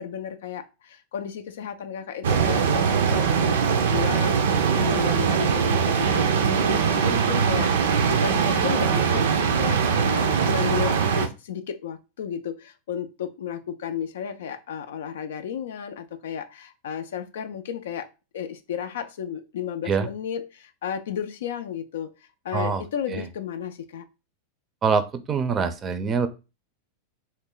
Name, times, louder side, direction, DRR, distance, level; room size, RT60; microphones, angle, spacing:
voice 1, 0.0-18.1 18.3-24.1, left 8 dB, 85° left, 8 dB, 0.3 m, -33 dB
sound 1, 2.2-11.3, right 6 dB, 85° right, 0.5 m, -22 dB
voice 2, 24.8-26.3, right 5 dB, 25° right, 10 dB, 0.4 m, -24 dB
3.2 x 2.1 x 3.7 m, 0.29 s
supercardioid pair, 130°, 0 cm